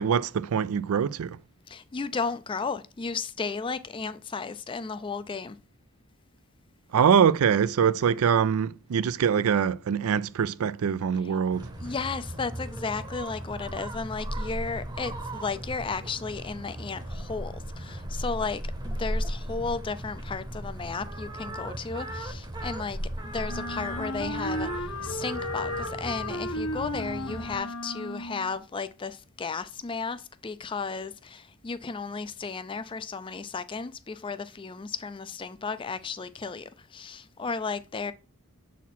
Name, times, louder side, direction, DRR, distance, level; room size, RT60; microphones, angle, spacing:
voice 1, 0.0-1.4 6.9-11.7, right 7 dB, 80° right, 0.4 m, -24 dB
voice 2, 1.7-5.6 11.8-23.0 23.3-38.1, left 4 dB, 25° left, 0.4 m, -34 dB
sound 1, 11.5-27.6, right 1 dB, 20° right, 0.8 m, -36 dB
Wind instrument woodwind instrument, 23.5-28.5, left 1 dB, 85° left, 1.1 m, -34 dB
7.0 x 4.2 x 4.2 m
head